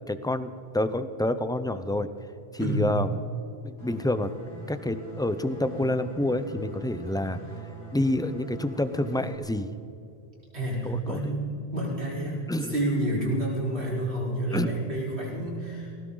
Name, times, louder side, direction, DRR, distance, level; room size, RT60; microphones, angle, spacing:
voice 1, 0.1-2.1 2.5-3.2 3.6-4.3 4.7-7.4 7.9-9.7 10.8-11.3 12.5-12.7 14.5-14.7, left 1 dB, 5° left, 11 dB, 0.4 m, -28 dB
sound 1, 3.8-9.3, right 2 dB, 35° left, 3.3 m, -43 dB
voice 2, 10.5-15.9, right 1 dB, 75° right, -5 dB, 4.7 m, -29 dB
20.0 x 17.5 x 3.9 m, 2.7 s
omnidirectional pair, 1.1 m